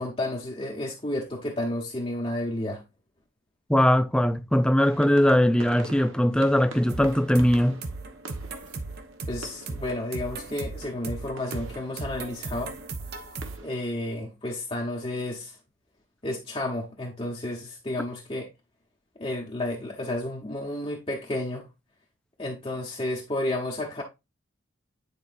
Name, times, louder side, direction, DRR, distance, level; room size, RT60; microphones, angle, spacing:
voice 1, 0.0-2.8 9.3-12.7 13.6-15.6 16.2-18.5 19.2-21.7 22.4-24.0, left 1 dB, 25° left, 1.0 m, -31 dB
voice 2, 3.7-7.8, equal, 5° left, 0.3 m, -21 dB
sound 1, 4.8-13.9, right 2 dB, 65° right, 1.2 m, -46 dB
sound 2, 6.9-13.6, right 3 dB, 50° right, 0.9 m, -37 dB
9.7 x 4.7 x 2.6 m
head